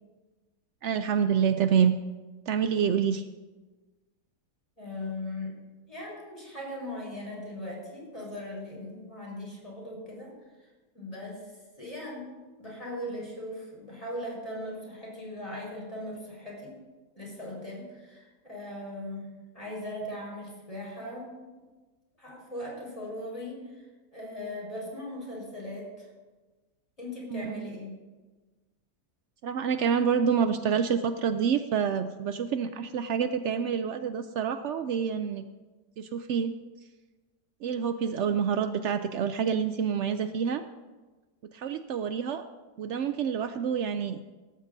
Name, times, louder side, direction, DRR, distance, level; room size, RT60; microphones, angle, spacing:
voice 1, 0.8-1.9 2.5-3.3 27.3-27.7 29.4-35.4 36.0-36.5 37.6-40.6 41.5-42.4 42.8-44.2, right 7 dB, 90° right, 10 dB, 0.6 m, -27 dB
voice 2, 4.8-5.5 5.9-10.3 10.9-11.5 11.8-12.3 12.6-16.8 17.1-21.3 22.2-23.8 24.1-26.1 27.0-27.9, left 1 dB, 20° left, -3 dB, 4.7 m, -39 dB
17.5 x 14.0 x 2.7 m, 1.3 s
omnidirectional pair, 1.8 m